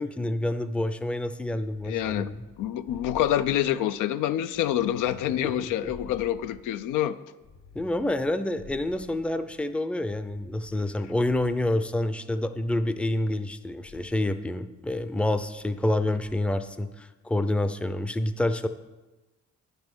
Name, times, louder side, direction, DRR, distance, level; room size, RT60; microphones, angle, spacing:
voice 1, 0.0-2.4 5.4-5.9 7.7-18.7, left 1 dB, 5° left, 11 dB, 0.4 m, -28 dB
sound 1, 1.6-4.0 4.5-7.0 7.4-9.6 10.1-11.9 12.6-13.5 13.8-14.3 15.2-15.9 16.2-16.7, left 5 dB, 70° left, 1.3 m, -51 dB
voice 2, 1.8-2.3 2.6-7.2, left 11 dB, 90° left, 12 dB, 0.5 m, -27 dB
9.2 x 5.4 x 6.2 m, 1.1 s
cardioid pair, 90°, 30 cm